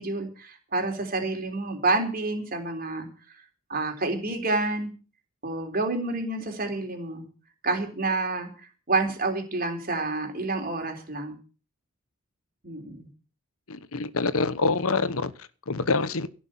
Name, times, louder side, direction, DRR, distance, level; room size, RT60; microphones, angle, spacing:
voice 1, 0.0-3.4 3.7-4.9 5.4-7.2 7.6-11.4 12.6-13.1, right 3 dB, 40° right, 3.8 m, -29 dB
voice 2, 13.7-16.3, left 3 dB, 70° left, 1.1 m, -26 dB
17.0 x 6.2 x 8.8 m
head